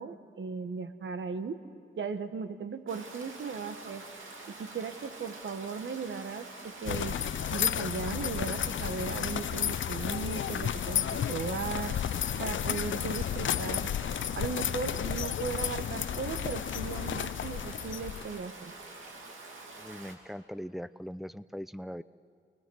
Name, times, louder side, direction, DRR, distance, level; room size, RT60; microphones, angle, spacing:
voice 1, 0.0-1.6 2.0-4.0 4.5-7.2 7.5-12.0 12.4-13.9 14.3-18.7, right 5 dB, 70° right, 9 dB, 1.4 m, -37 dB
Stream, 2.9-20.1, right 2 dB, 90° right, 2.6 m, -47 dB
sound 1, 6.9-18.4, left 9 dB, 75° left, 0.5 m, -32 dB
voice 2, 19.8-22.0, equal, ahead, 13 dB, 0.6 m, -40 dB
29.0 x 19.5 x 6.4 m, 2.4 s
cardioid pair, 70°, 20 cm